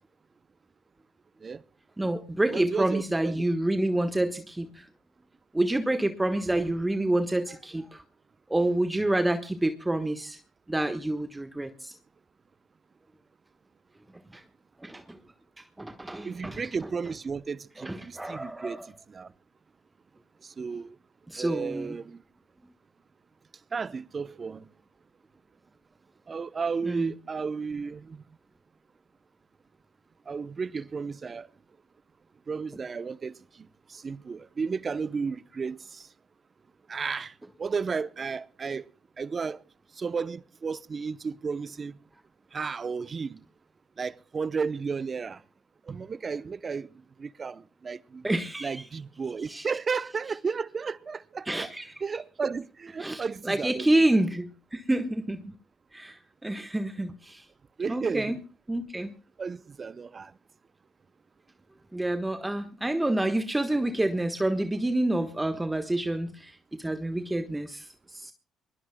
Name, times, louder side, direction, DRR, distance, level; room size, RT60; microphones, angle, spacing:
voice 1, 2.0-4.8 5.5-8.0 8.5-10.4 10.7-12.0 14.3-14.4 14.8-15.2 15.6-16.6 17.8-18.9 21.3-22.0 26.8-27.1 48.2-48.8 49.5-49.7 51.5-51.9 53.0-55.4 55.9-57.4 57.9-58.4 58.7-59.1 61.9-68.3, right 1 dB, 15° right, 1.3 m, -28 dB
voice 2, 2.5-3.4 16.2-19.3 20.4-21.0 21.4-22.2 23.7-24.7 26.3-28.2 30.3-31.5 32.5-36.1 36.9-38.9 39.2-39.6 39.9-42.0 42.5-43.4 44.0-45.4 45.8-48.3 48.6-51.7 52.0-54.0 57.8-58.4 59.4-60.3, right 5 dB, 40° right, 0.8 m, -33 dB
23.5 x 21.0 x 2.2 m
supercardioid pair, 60°, 0 cm